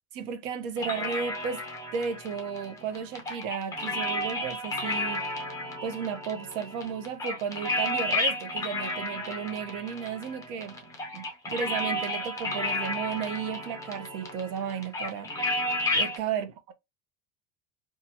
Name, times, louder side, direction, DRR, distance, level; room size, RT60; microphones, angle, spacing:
voice 1, 0.1-1.6 1.9-5.2 5.8-10.8 11.1-15.3 15.9-16.7, right 7 dB, 65° right, 0.7 m, -34 dB
sound 1, 0.8-16.2, left 2 dB, 10° left, 0.5 m, -32 dB
2.7 x 2.4 x 2.8 m
cardioid pair, 150°, 33 cm